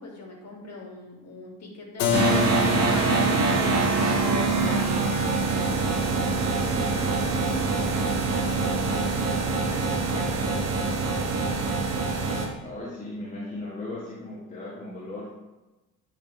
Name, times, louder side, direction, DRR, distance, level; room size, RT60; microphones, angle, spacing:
voice 1, 0.0-2.4 2.9-9.2 9.7-11.0, left 2 dB, 35° left, -2 dB, 2.5 m, -42 dB
Keyboard (musical), 2.0-7.6, left 5 dB, 55° left, 1.1 m, -31 dB
sound 1, 2.1-12.5, right 3 dB, 35° right, 1.2 m, -24 dB
voice 2, 12.6-15.3, left 2 dB, 15° left, -6 dB, 1.4 m, -37 dB
10.0 x 4.3 x 3.4 m, 1.1 s
figure-of-eight pair, 55°, 46 cm